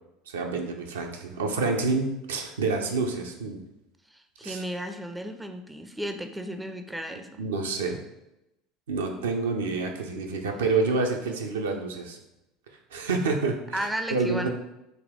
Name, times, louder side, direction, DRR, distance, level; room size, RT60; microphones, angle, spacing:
voice 1, 0.3-3.6 4.4-4.6 7.4-8.0 8.9-12.2 12.9-14.5, right 3 dB, 70° right, 2 dB, 0.4 m, -28 dB
voice 2, 4.1-7.4 13.7-14.5, right 1 dB, 5° right, 6 dB, 0.4 m, -34 dB
4.1 x 2.2 x 3.4 m, 0.90 s
figure-of-eight pair, 70°, 0 cm